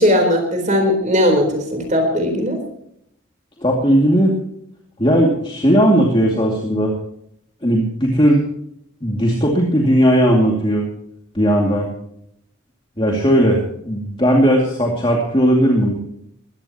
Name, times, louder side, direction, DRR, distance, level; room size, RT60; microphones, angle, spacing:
voice 1, 0.0-2.6, left 1 dB, 35° right, 5 dB, 4.0 m, -17 dB
voice 2, 3.6-4.3 5.0-6.9 7.6-8.4 9.0-10.9 11.3-11.9 13.0-15.9, equal, 25° left, -1 dB, 2.5 m, -16 dB
21.0 x 16.0 x 3.0 m, 0.73 s
head